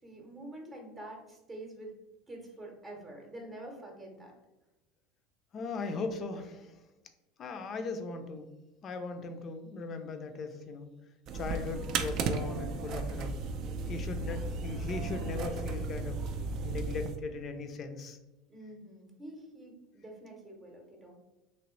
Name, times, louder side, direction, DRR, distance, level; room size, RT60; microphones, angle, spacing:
voice 1, 0.0-2.0 2.3-4.3 14.2-14.5 18.5-21.1, right 1 dB, 25° right, 0 dB, 0.8 m, -47 dB
voice 2, 5.5-6.8 7.4-8.5 8.8-10.9 11.3-13.4 13.9-16.2 16.6-18.2, left 4 dB, 40° left, 7 dB, 0.5 m, -38 dB
sound 1, 11.3-17.2, right 4 dB, 55° right, 0.4 m, -35 dB
3.0 x 2.9 x 3.0 m, 1.0 s
supercardioid pair, 100°, 0 cm